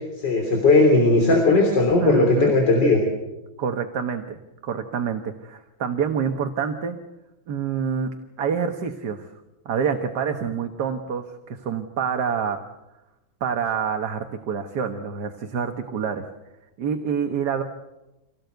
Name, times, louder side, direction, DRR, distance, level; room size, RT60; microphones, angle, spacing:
voice 1, 0.2-3.0, left 3 dB, 65° left, 2 dB, 4.0 m, -17 dB
voice 2, 2.0-2.5 3.6-7.0 7.5-8.1 8.4-9.3 9.7-12.6 13.4-16.2 16.8-17.6, right 6 dB, 60° right, 5 dB, 1.8 m, -27 dB
26.5 x 18.0 x 8.0 m, 1.0 s
omnidirectional pair, 2.1 m